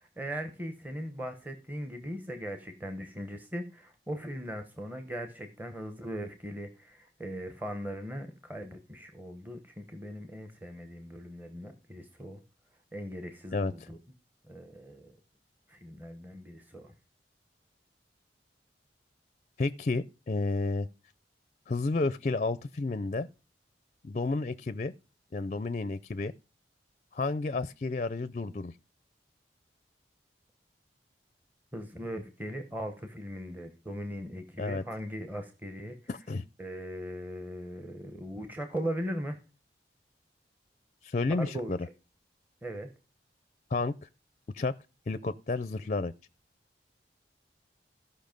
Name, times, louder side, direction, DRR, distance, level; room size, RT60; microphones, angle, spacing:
voice 1, 0.2-12.4 12.9-14.0 14.5-15.2 15.7-16.9 31.7-36.0 36.6-39.4 41.4-41.7 42.6-42.9, equal, 10° right, 1.0 m, -39 dB
voice 2, 13.5-13.9 19.6-20.9 21.7-23.3 24.0-24.9 25.3-26.3 27.1-28.7 34.6-34.8 36.1-36.4 41.0-41.8 43.7-44.1 44.5-44.7 45.1-46.1, left 3 dB, 40° left, 0.4 m, -31 dB
14.5 x 5.6 x 5.2 m
head